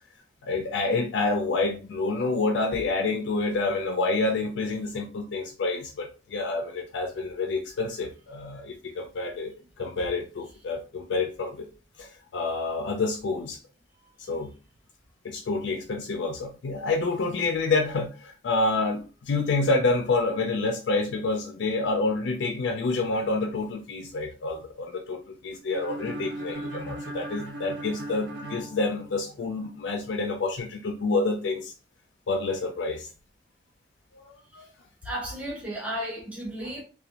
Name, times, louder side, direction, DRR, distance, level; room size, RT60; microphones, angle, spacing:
voice 1, 0.4-11.7 12.0-13.6 14.3-14.5 15.2-31.7 32.3-33.1 34.1-34.7 36.6-36.8, left 3 dB, 80° left, 0.4 m, -28 dB
sound 1, 25.7-29.6, right 1 dB, 65° right, 0.4 m, -38 dB
voice 2, 35.0-36.8, equal, 10° right, 0.8 m, -33 dB
2.5 x 2.2 x 2.8 m
head